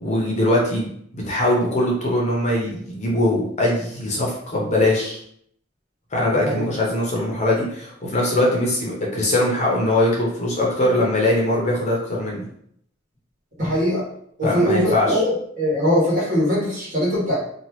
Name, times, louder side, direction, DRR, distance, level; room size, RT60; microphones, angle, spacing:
voice 1, 0.0-5.2 6.1-12.5 14.4-15.2, left 1 dB, 35° left, -3 dB, 0.7 m, -21 dB
voice 2, 13.6-14.0 14.4-15.3 15.6-17.4, equal, 45° right, -7 dB, 1.5 m, -21 dB
2.9 x 2.3 x 3.0 m, 0.67 s
head